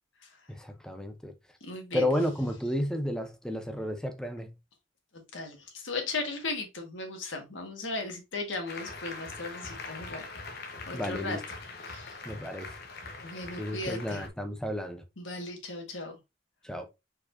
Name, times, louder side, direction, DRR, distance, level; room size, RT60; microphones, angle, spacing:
voice 1, 0.5-1.3 1.9-4.5 10.9-11.4 12.3-12.8 13.6-15.0 16.6-16.9, left 1 dB, 5° left, 0.6 m, -32 dB
voice 2, 1.6-2.0 5.1-10.2 10.9-11.4 11.9-12.2 13.2-14.2 15.2-16.1, left 3 dB, 85° left, 1.5 m, -36 dB
Applause, 8.7-14.3, left 3 dB, 60° left, 1.1 m, -42 dB
4.6 x 4.4 x 2.6 m
head